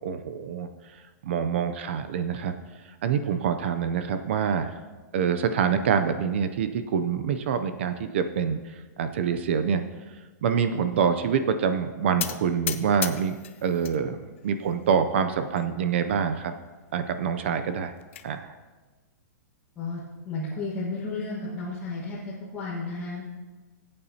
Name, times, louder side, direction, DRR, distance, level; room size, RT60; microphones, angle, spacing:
voice 1, 0.0-0.7 1.2-2.5 3.0-4.7 5.1-9.8 10.4-13.4 13.6-14.2 14.4-16.5 16.9-17.9 18.2-18.5, right 7 dB, 40° right, 9 dB, 0.5 m, -26 dB
sound 1, 12.2-14.0 14.4-15.0 15.6-15.7 15.9-16.0 16.4-16.5 17.6-18.3, left 11 dB, 45° left, 0.6 m, -35 dB
voice 2, 19.7-22.2 22.5-23.4, left 3 dB, 15° left, -9 dB, 1.5 m, -33 dB
18.5 x 8.5 x 2.8 m, 1.3 s
hypercardioid pair, 180°, 10 cm